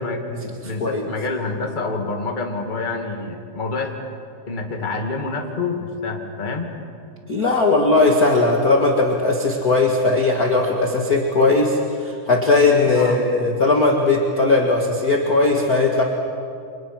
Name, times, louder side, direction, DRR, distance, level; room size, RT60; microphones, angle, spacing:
voice 1, 0.0-3.9 4.5-6.7 12.8-13.2, left 3 dB, 15° left, 1 dB, 2.1 m, -27 dB
voice 2, 7.3-16.0, left 3 dB, 35° left, 0 dB, 2.0 m, -18 dB
29.5 x 26.0 x 6.1 m, 2.5 s
omnidirectional pair, 3.5 m